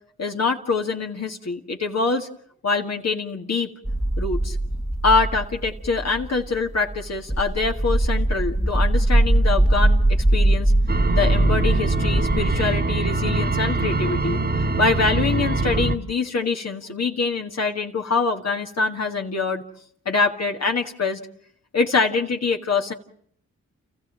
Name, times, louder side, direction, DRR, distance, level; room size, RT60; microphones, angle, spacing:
voice 1, 0.2-2.3 2.6-3.7 4.2-4.6 5.0-10.7 11.1-14.4 14.8-19.6 20.1-21.2 21.7-22.9, left 4 dB, 60° left, 2 dB, 1.9 m, -24 dB
sound 1, 3.8-12.6, right 1 dB, ahead, 1.2 m, -21 dB
sound 2, 10.9-15.9, right 2 dB, 35° right, 1.4 m, -23 dB
29.5 x 14.5 x 7.5 m, 0.66 s
supercardioid pair, 45°, 30 cm